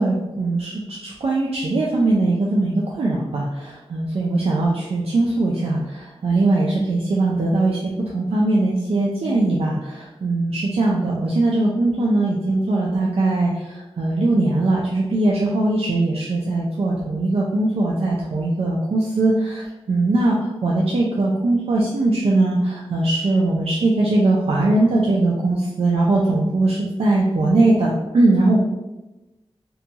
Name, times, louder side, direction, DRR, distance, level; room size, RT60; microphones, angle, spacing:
voice 1, 0.0-19.6 19.9-20.4 20.6-28.6, right 2 dB, 70° right, -3 dB, 0.4 m, -20 dB
2.8 x 2.2 x 2.7 m, 1.0 s
wide cardioid pair, 75°, 10 cm